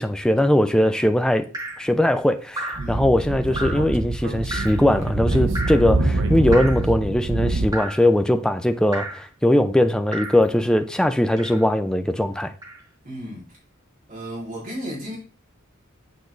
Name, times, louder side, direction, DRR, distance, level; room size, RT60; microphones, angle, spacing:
voice 1, 0.0-1.5 1.8-12.5, left 1 dB, 5° left, 0.3 m, -20 dB
Drip, 1.5-1.9 2.5-2.9 3.6-3.9 4.5-4.8 5.6-5.9 6.5-6.9 7.7-8.1 8.9-9.3 10.1-10.4 11.4-11.7 12.6-12.8, right 1 dB, 20° right, 1.2 m, -32 dB
Speech / Wind, 2.7-7.7, right 2 dB, 60° right, 0.7 m, -25 dB
voice 2, 13.0-13.5 14.1-15.2, equal, 40° right, 2.8 m, -34 dB
7.9 x 3.9 x 3.1 m
head